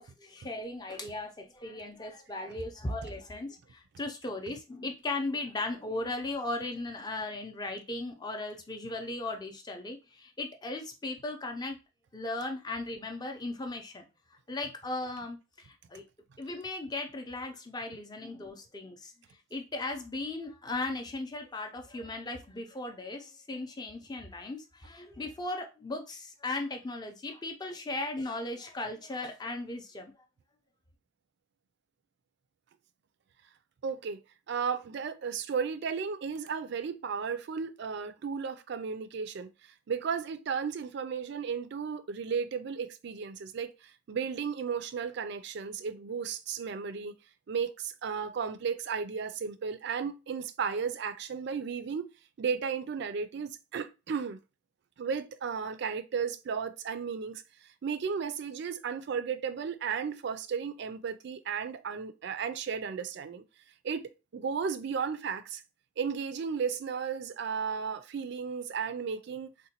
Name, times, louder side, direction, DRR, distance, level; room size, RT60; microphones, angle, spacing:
voice 1, 0.0-11.8 12.1-14.1 14.5-16.0 16.4-19.1 19.5-30.1, left 2 dB, 20° left, 0.5 m, -37 dB
voice 2, 33.8-34.2 34.5-39.5 39.9-47.2 47.5-52.1 52.4-54.4 55.0-57.4 57.8-63.4 63.8-65.6 66.0-69.5, right 6 dB, 55° right, 0.3 m, -34 dB
3.8 x 2.2 x 2.8 m
head